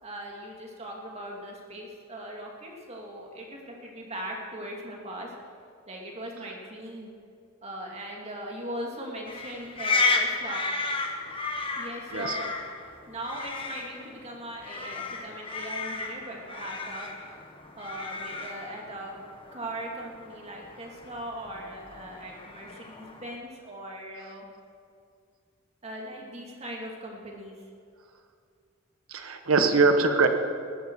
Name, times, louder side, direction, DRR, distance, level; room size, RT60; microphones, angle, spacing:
voice 1, 0.0-5.3 5.9-7.1 7.6-10.6 11.8-12.5 13.1-17.1 17.8-19.2 19.5-24.5 25.8-27.6, right 1 dB, 30° right, -1 dB, 2.5 m, -39 dB
sound 1, 9.3-23.4, left 3 dB, 25° left, 1.2 m, -33 dB
voice 2, 29.1-30.3, right 4 dB, 80° right, 7 dB, 1.2 m, -22 dB
20.0 x 12.5 x 4.8 m, 2.3 s
head